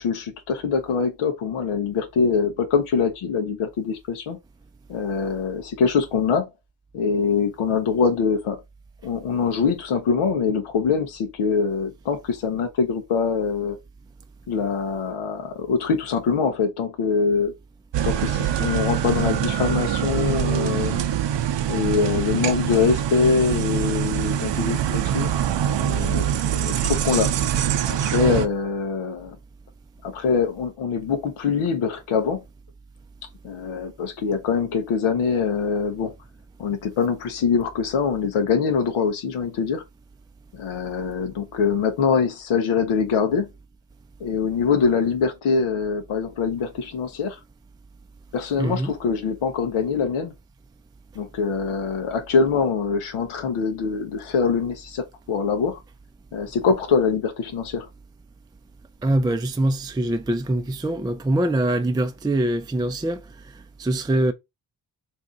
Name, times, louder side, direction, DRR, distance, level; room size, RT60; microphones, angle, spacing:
voice 1, 0.0-4.4 4.9-6.5 6.9-8.6 9.0-13.8 14.5-17.5 18.0-21.0 21.7-25.3 25.8-27.3 27.9-29.4 30.0-32.4 33.4-36.1 36.6-39.8 40.5-43.5 44.2-47.4 48.3-50.3 51.1-55.8 56.3-57.9, left 5 dB, 85° left, 0.7 m, -23 dB
sound 1, 17.9-28.5, right 10 dB, 60° right, 0.6 m, -24 dB
voice 2, 48.6-48.9 59.0-64.3, right 1 dB, 10° right, 0.3 m, -24 dB
2.7 x 2.6 x 3.6 m
supercardioid pair, 40°, 49 cm